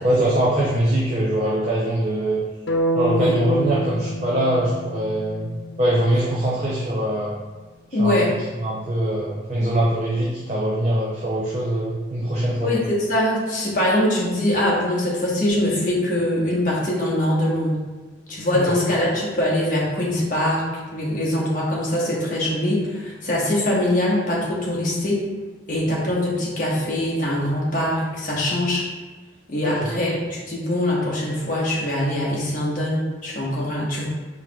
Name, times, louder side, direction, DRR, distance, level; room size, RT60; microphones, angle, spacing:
voice 1, 0.0-2.4 2.9-5.5 5.8-7.3 8.0-12.7 18.5-18.8 29.6-29.9, right 1 dB, 35° right, -5 dB, 0.5 m, -22 dB
sound 1, 2.7-6.7, right 1 dB, 75° left, 0.4 m, -28 dB
voice 2, 7.9-8.3 12.6-17.8 18.3-20.6 20.9-25.2 25.7-28.8 29.5-34.1, left 1 dB, 45° left, -5 dB, 1.0 m, -23 dB
4.5 x 3.6 x 2.2 m, 1.3 s
head